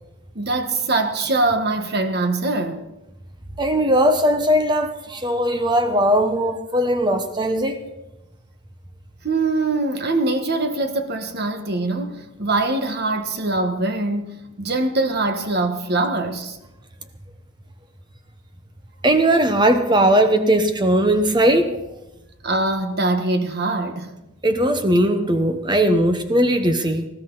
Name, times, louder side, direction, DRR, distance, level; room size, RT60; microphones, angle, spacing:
voice 1, 0.3-2.8 9.2-16.6 22.4-24.1, right 2 dB, 50° right, 1.4 m, -23 dB
voice 2, 3.6-7.8 19.0-21.7 24.4-27.1, right 1 dB, 20° right, 1.1 m, -18 dB
19.5 x 15.0 x 4.0 m
head